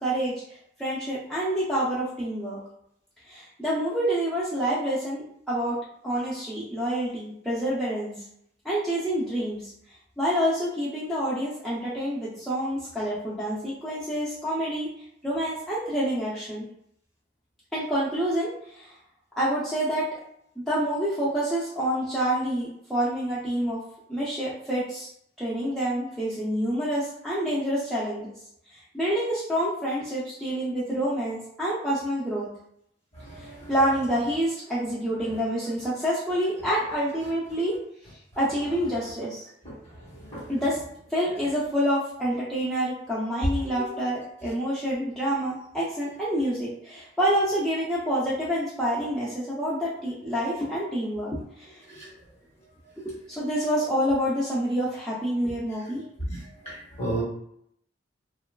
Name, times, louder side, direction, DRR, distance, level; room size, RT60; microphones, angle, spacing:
voice 1, 0.0-0.3 0.8-2.6 3.3-5.8 6.0-8.1 8.6-9.7 10.2-14.9 15.2-16.7 17.7-18.9 19.4-20.1 20.6-23.8 24.1-25.1 25.4-28.3 28.7-32.5 33.4-37.7 38.4-39.5 40.5-40.8 41.1-52.0 53.0-56.0, equal, ahead, -9 dB, 0.5 m, -27 dB
voice 2, 33.2-33.7 39.6-39.7 40.3-40.5 56.2-56.4 56.6-57.2, right 1 dB, 35° left, -6 dB, 1.2 m, -32 dB
2.9 x 2.3 x 2.2 m, 0.71 s
head